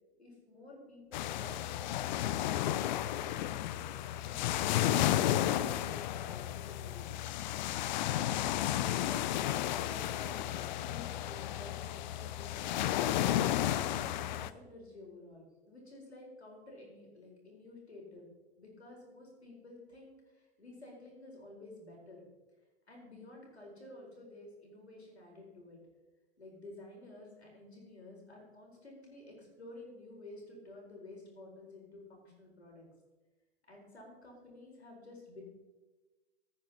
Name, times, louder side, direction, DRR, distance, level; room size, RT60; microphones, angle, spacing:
voice 1, 0.2-1.8 3.2-7.1 8.4-13.2 13.7-18.3 18.6-22.2 22.9-25.8 26.4-32.9 33.7-35.4, left 2 dB, 80° left, -1 dB, 4.4 m, -52 dB
sound 1, 1.1-14.5, left 12 dB, 45° left, 0.6 m, -33 dB
15.5 x 9.1 x 4.1 m, 1.2 s
figure-of-eight pair, 105°, 32 cm